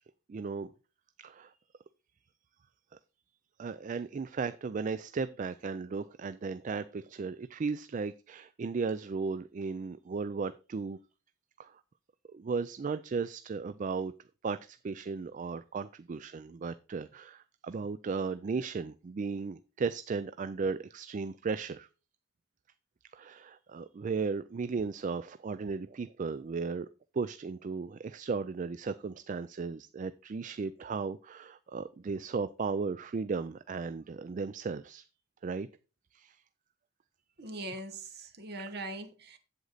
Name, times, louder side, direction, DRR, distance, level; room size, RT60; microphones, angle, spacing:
voice 1, 0.3-0.7 1.2-1.5 3.6-11.0 11.6-11.7 12.3-14.1 14.4-21.9 23.1-26.9 27.1-35.0 35.4-35.7 36.1-36.4, right 4 dB, 40° right, 0.3 m, -35 dB
voice 2, 37.4-39.4, right 2 dB, 55° right, 1.3 m, -41 dB
8.0 x 7.9 x 4.0 m
head